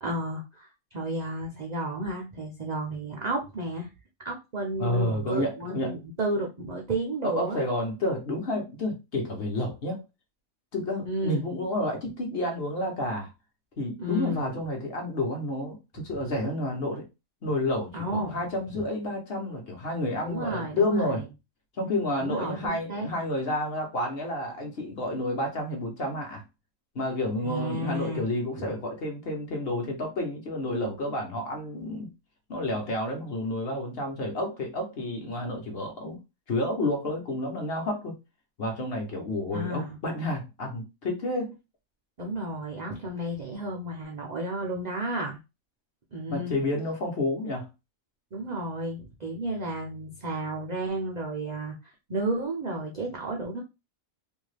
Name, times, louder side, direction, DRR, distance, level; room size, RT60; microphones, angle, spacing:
voice 1, 0.0-3.9 4.2-7.6 11.0-11.5 14.0-14.5 17.9-18.4 18.7-18.8 20.3-21.3 22.2-23.1 27.4-28.2 28.6-28.7 39.5-40.0 42.2-45.4 46.1-46.5 48.3-51.8 52.1-53.6, right 1 dB, 65° right, 0.4 m, -32 dB
voice 2, 4.8-5.9 7.2-10.0 10.7-13.3 13.8-17.1 17.4-21.3 21.8-26.4 26.9-32.1 32.5-36.2 36.5-38.2 38.6-41.5 46.3-47.7, left 1 dB, 50° left, 0.9 m, -30 dB
2.6 x 2.3 x 3.2 m
omnidirectional pair, 1.5 m